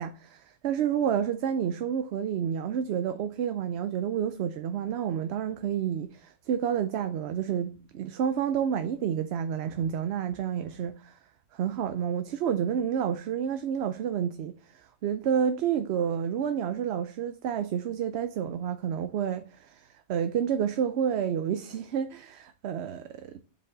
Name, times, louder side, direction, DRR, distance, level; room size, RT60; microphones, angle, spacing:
voice 1, 0.0-11.2 11.5-23.4, right 8 dB, 75° right, 0.8 m, -29 dB
7.1 x 4.9 x 3.8 m
omnidirectional pair, 1.1 m